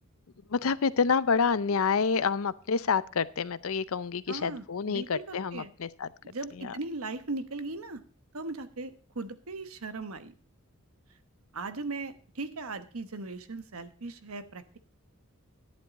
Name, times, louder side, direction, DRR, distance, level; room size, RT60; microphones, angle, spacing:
voice 1, 0.5-6.1 6.5-6.8, left 5 dB, 75° left, 16 dB, 0.6 m, -28 dB
voice 2, 4.3-5.7 6.2-8.0 8.3-10.3 11.5-14.8, right 3 dB, 80° right, 10 dB, 1.1 m, -38 dB
11.5 x 10.5 x 4.1 m, 0.40 s
head